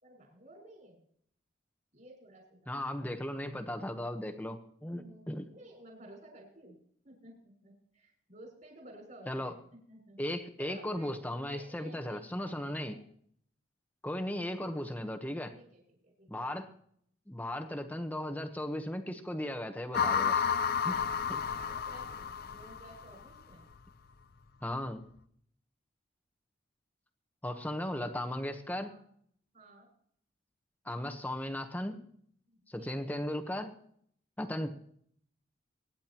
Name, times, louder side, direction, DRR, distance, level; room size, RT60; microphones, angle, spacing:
voice 1, 0.0-1.0 1.9-2.7 4.9-6.8 7.0-10.2 10.6-11.2 11.5-13.0 15.5-16.6 21.4-23.7 28.9-29.0 29.5-29.9 32.5-33.1 34.4-34.7, right 1 dB, 40° right, 0 dB, 6.3 m, -54 dB
voice 2, 2.7-5.4 9.3-9.6 10.2-13.0 14.0-15.5 16.3-16.7 17.3-20.5 20.8-21.0 21.3-21.4 24.6-25.0 27.4-28.9 30.8-32.0 32.7-33.7 34.4-34.7, left 1 dB, 10° left, 6 dB, 1.1 m, -36 dB
sound 1, 19.9-23.2, left 7 dB, 50° left, 0.5 m, -31 dB
24.0 x 10.5 x 3.0 m, 0.65 s
head